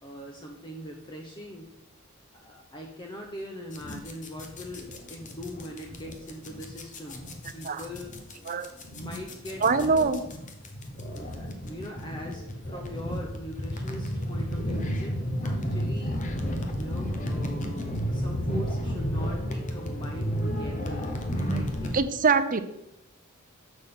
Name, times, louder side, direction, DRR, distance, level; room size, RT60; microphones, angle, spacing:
voice 1, 0.0-1.7 2.3-8.2 8.9-10.1 11.1-16.2 16.8-22.0, equal, 20° left, 1 dB, 0.8 m, -41 dB
sound 1, 3.7-22.0, equal, 40° left, 1.1 m, -32 dB
voice 2, 9.6-10.2 21.9-22.6, right 5 dB, 40° right, 11 dB, 0.6 m, -23 dB
6.9 x 6.3 x 5.6 m, 0.86 s
head